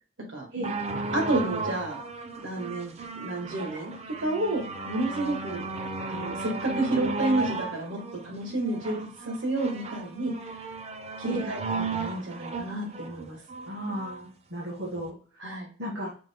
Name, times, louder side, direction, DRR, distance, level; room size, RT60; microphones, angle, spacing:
sound 1, 0.6-14.2 15.0-15.1, right 3 dB, 35° right, 0.5 m, -35 dB
voice 1, 1.1-2.0 2.4-3.9 4.2-5.6 6.1-10.7 11.2-13.4 15.4-15.7, right 2 dB, 85° right, 1 dB, 1.5 m, -30 dB
voice 2, 13.7-15.4 15.8-16.1, right 1 dB, 65° right, -4 dB, 1.3 m, -34 dB
5.0 x 2.1 x 3.5 m, 0.41 s
head